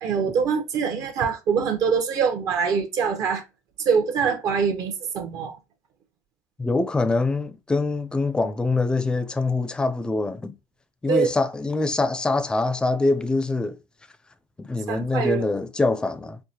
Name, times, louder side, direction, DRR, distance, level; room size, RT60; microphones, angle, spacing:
voice 1, 0.0-3.4 3.8-5.6 11.1-11.3 14.9-15.4, right 6 dB, 55° right, 0.8 m, -24 dB
voice 2, 6.6-10.6 11.0-13.8 14.6-16.4, left 3 dB, 10° left, 0.4 m, -24 dB
4.7 x 2.1 x 2.8 m
supercardioid pair, 110°, 7 cm